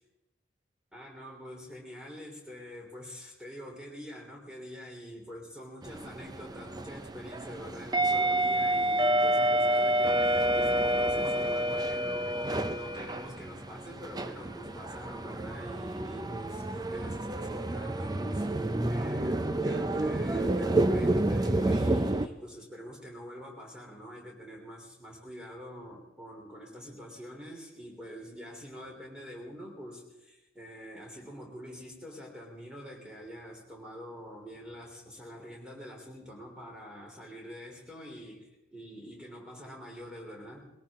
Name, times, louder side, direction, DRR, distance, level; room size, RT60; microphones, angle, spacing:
voice 1, 0.9-40.7, equal, 5° right, -1 dB, 3.5 m, -45 dB
sound 1, 5.8-22.3, right 1 dB, 20° right, 0.6 m, -29 dB
21.0 x 17.5 x 3.7 m, 0.95 s
head